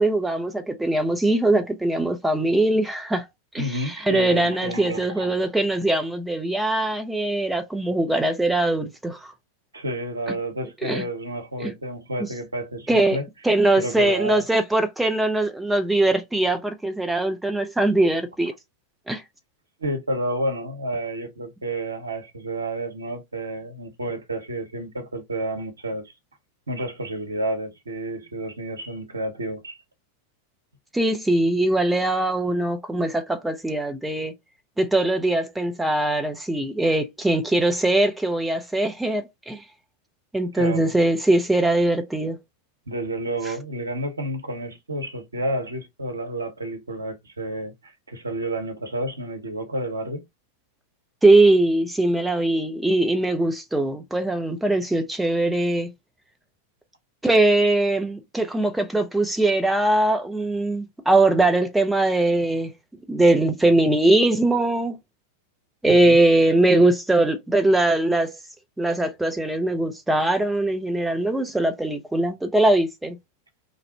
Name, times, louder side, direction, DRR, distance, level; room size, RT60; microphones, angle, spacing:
voice 1, 0.0-3.3 3.5-9.3 10.8-11.0 11.6-11.7 12.9-13.2 13.4-18.5 19.1-19.2 30.9-34.3 34.8-39.6 40.3-42.4 51.2-55.9 57.2-62.7 63.1-65.0 65.8-68.4 68.8-73.2, right 2 dB, 5° right, 0.4 m, -21 dB
voice 2, 3.6-5.3 9.7-13.3 13.8-14.5 19.8-26.1 26.7-29.8 40.5-40.9 42.9-50.2 65.8-66.2, right 1 dB, 75° right, 0.7 m, -30 dB
2.5 x 2.0 x 2.7 m
figure-of-eight pair, 90°, 0 cm